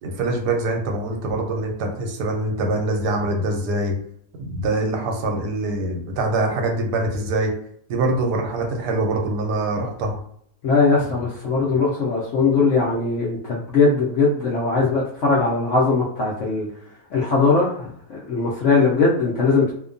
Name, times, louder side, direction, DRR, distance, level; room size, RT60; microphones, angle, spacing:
voice 1, 0.0-4.0 4.4-7.5 7.9-10.2, right 2 dB, 80° right, 2 dB, 1.2 m, -24 dB
voice 2, 10.6-16.7 17.1-17.7 18.3-19.7, left 4 dB, 70° left, -5 dB, 0.7 m, -19 dB
2.7 x 2.2 x 2.5 m, 0.65 s
omnidirectional pair, 1.8 m